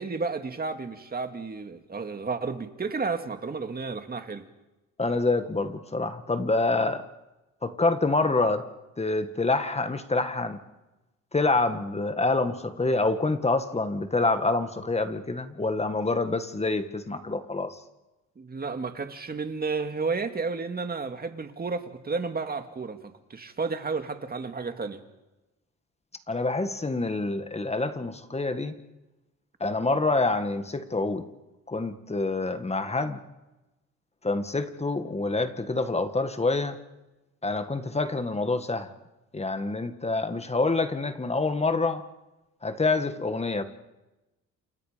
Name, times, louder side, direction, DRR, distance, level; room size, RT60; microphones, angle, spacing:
voice 1, 0.0-4.4 18.4-25.0, right 4 dB, 30° right, 7 dB, 2.4 m, -32 dB
voice 2, 5.0-7.0 7.6-8.7 9.0-10.6 11.3-17.8 26.3-28.7 29.6-31.2 31.7-33.2 34.2-36.8 37.4-38.9 39.3-42.0 42.6-43.6, left 3 dB, 20° left, 9 dB, 1.9 m, -26 dB
29.0 x 28.0 x 5.3 m, 1.1 s
cardioid pair, 90°, 30 cm